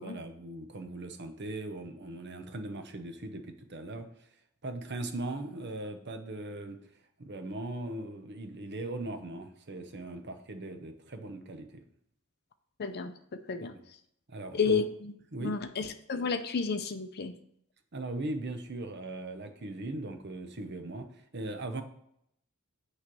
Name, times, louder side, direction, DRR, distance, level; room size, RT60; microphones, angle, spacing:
voice 1, 0.0-4.1 4.6-6.8 7.2-11.7 13.6-13.8 14.3-14.9 15.3-15.7 17.9-21.1 21.3-21.8, right 2 dB, 50° right, 7 dB, 0.9 m, -39 dB
voice 2, 12.8-13.7 14.5-15.1 15.4-17.4, left 5 dB, 50° left, 9 dB, 0.5 m, -31 dB
8.7 x 3.2 x 6.0 m, 0.72 s
head